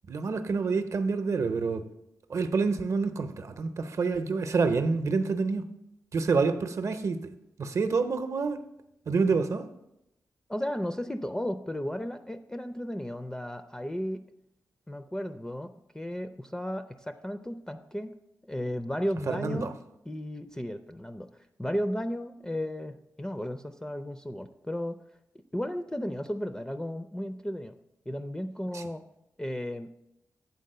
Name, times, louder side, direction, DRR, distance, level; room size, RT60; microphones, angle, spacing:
voice 1, 0.1-1.8 2.3-5.6 6.1-7.3 7.6-8.6 9.1-9.7 19.3-19.7 28.7-28.8, right 4 dB, 60° right, 0.6 m, -27 dB
voice 2, 10.5-14.3 14.9-18.1 18.5-19.7 20.1-21.3 21.6-25.0 25.5-27.7 28.1-29.0 29.4-29.9, equal, 10° left, 0.4 m, -34 dB
8.3 x 4.1 x 6.6 m
wide cardioid pair, 95°, 6 cm